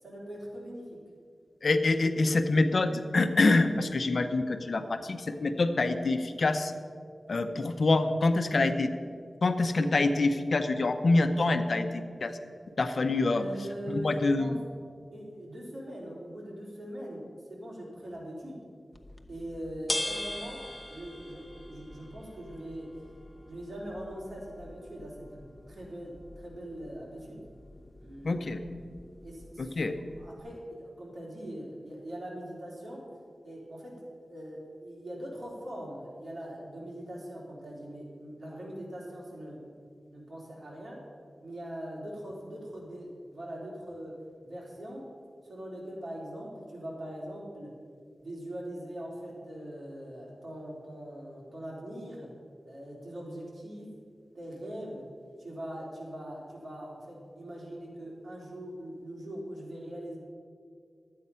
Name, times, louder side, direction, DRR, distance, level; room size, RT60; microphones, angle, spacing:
voice 1, 0.0-1.0 13.3-14.6 15.1-17.2 17.5-18.6 19.3-20.6 20.9-23.0 23.5-27.4 28.0-28.5 28.8-29.8 30.2-33.0 33.4-41.0 41.4-44.2 44.4-45.0 45.4-47.7 48.2-52.3 52.6-54.0 54.3-55.1 55.4-60.2, equal, 60° right, -3 dB, 3.3 m, -42 dB
voice 2, 1.6-6.7 7.3-8.9 9.4-12.4 12.8-13.5 13.9-14.6 28.2-28.6 29.6-29.9, left 2 dB, 65° left, 8 dB, 0.7 m, -26 dB
sound 1, 18.9-30.4, left 1 dB, 25° left, 0.9 m, -42 dB
12.0 x 8.6 x 5.6 m, 2.2 s
wide cardioid pair, 70°, 0 cm